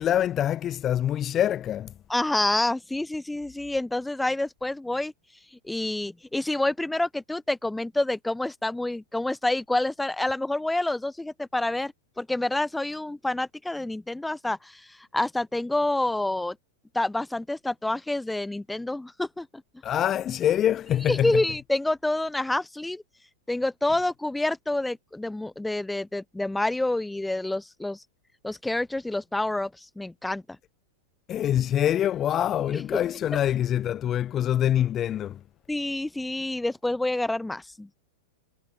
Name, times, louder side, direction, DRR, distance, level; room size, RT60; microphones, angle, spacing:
voice 1, 0.0-1.9 19.8-21.4 31.3-35.4, left 11 dB, 30° left, 0.3 m, -25 dB
voice 2, 2.1-5.1 5.5-16.6 16.9-19.6 21.1-23.0 23.5-28.0 28.4-30.4 32.7-33.0 35.7-38.0, left 2 dB, 5° left, 0.7 m, -28 dB
hypercardioid pair, 110°, 0 cm